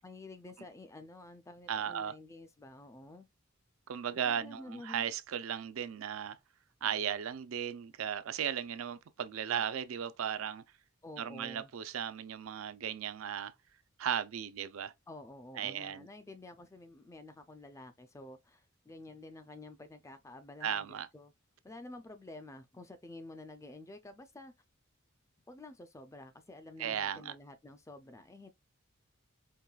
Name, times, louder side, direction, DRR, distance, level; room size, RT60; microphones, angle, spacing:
voice 1, 0.0-3.3 4.3-5.0 11.0-11.7 15.1-21.3 21.6-24.5 25.5-28.5, left 2 dB, 15° left, 0.3 m, -50 dB
voice 2, 1.7-2.1 3.9-6.4 6.8-10.6 11.2-13.5 14.0-14.9 15.5-16.1 20.6-21.1 26.8-27.3, right 8 dB, 80° right, 0.4 m, -36 dB
4.6 x 2.9 x 2.3 m
head